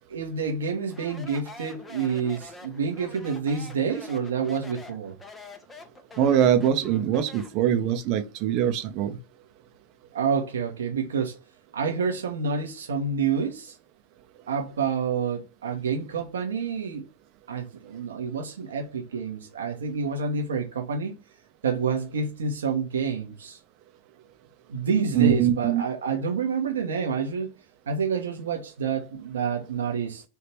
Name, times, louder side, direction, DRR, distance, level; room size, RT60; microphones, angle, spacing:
voice 1, 0.1-5.1 10.1-11.4 11.7-13.7 14.5-17.0 17.5-21.1 21.6-23.6 24.7-27.5 27.9-30.2, right 5 dB, 90° right, 1.2 m, -28 dB
Speech, 0.9-7.6, left 3 dB, 15° left, 1.0 m, -45 dB
voice 2, 6.2-9.2 25.1-25.8, right 10 dB, 55° right, 0.9 m, -22 dB
3.5 x 2.9 x 4.4 m
hypercardioid pair, 105°, 0 cm